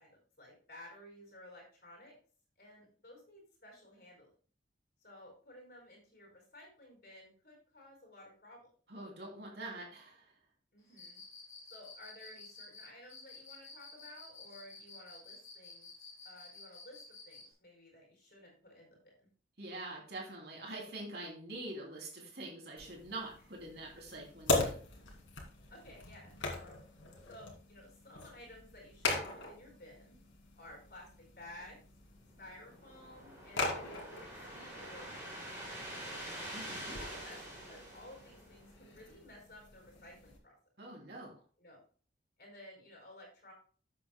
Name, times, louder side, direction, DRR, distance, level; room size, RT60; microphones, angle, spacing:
voice 1, 0.0-2.1 2.6-4.3 5.0-8.7 10.7-11.2 11.7-15.9 16.2-19.3 25.7-27.0 27.3-30.2 30.6-31.8 32.4-36.3 37.1-40.5 41.6-41.8 42.4-43.5, left 1 dB, 50° left, 0 dB, 4.6 m, -55 dB
voice 2, 8.9-10.3 19.6-24.8 36.5-37.0 40.8-41.4, right 2 dB, 55° right, -1 dB, 3.0 m, -45 dB
Cricket, 10.9-17.5, left 4 dB, 20° left, 5.0 m, -52 dB
sound 1, 22.8-40.4, left 3 dB, 80° left, 2.4 m, -41 dB
sound 2, 32.3-38.8, right 1 dB, 10° right, 4.6 m, -46 dB
12.5 x 7.7 x 2.2 m, 0.43 s
head